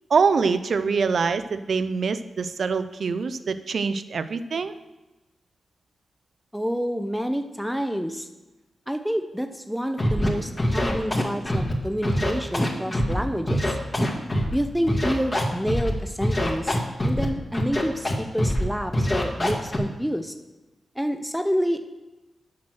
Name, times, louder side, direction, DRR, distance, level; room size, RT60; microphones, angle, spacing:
voice 1, 0.1-4.7, right 5 dB, 70° right, 12 dB, 0.5 m, -24 dB
voice 2, 6.5-8.3 8.9-13.8 14.5-20.3 21.0-21.8, equal, ahead, 7 dB, 0.7 m, -28 dB
Scratching (performance technique), 10.0-10.3 10.6-11.7 12.0-13.1 13.5-14.6 14.9-15.9 16.2-17.2 17.5-18.1 18.4-18.6 18.9-19.8, left 1 dB, 35° left, 2.0 m, -24 dB
7.3 x 6.2 x 6.2 m, 1.1 s
cardioid pair, 45°, 0 cm